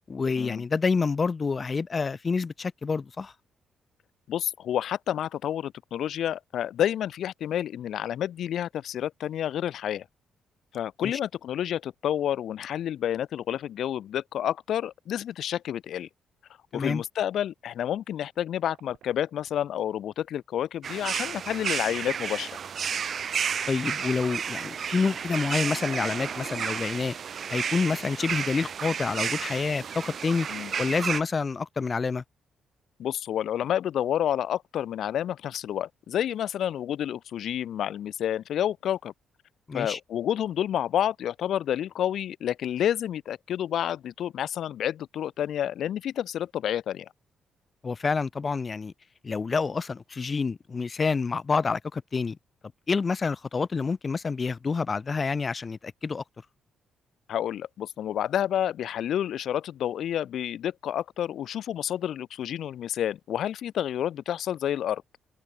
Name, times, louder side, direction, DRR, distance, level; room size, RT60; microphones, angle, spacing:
voice 1, 0.1-3.3 11.0-11.1 16.7-17.0 23.7-27.1 27.5-30.5 30.8-32.2 39.7-40.0 47.8-48.9 49.2-52.4 52.9-56.2, left 4 dB, 40° left, 1.4 m, -28 dB
voice 2, 4.3-10.0 10.7-16.1 16.7-22.6 30.5-30.7 33.0-39.1 39.7-47.1 57.3-65.0, left 10 dB, 70° left, 1.5 m, -29 dB
sound 1, 18.1-20.4 20.9-21.0 23.6-24.8 25.1-25.2 28.7-29.1 29.5-29.6, right 12 dB, 75° right, 6.3 m, -63 dB
sound 2, 20.8-31.2, right 7 dB, 55° right, 0.3 m, -32 dB
supercardioid pair, 70°, 0 cm